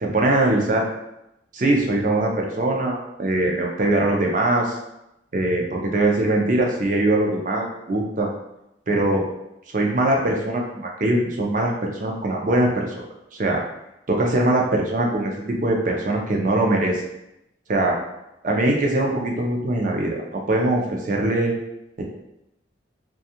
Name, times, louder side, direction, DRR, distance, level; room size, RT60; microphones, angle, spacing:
voice 1, 0.0-0.9 1.5-4.7 5.3-8.3 8.9-9.2 9.7-12.9 13.4-13.6 14.1-17.0 17.7-18.0 18.4-21.5 22.0-22.1, right 1 dB, 45° right, 0 dB, 0.4 m, -22 dB
2.6 x 2.3 x 2.7 m, 0.86 s
head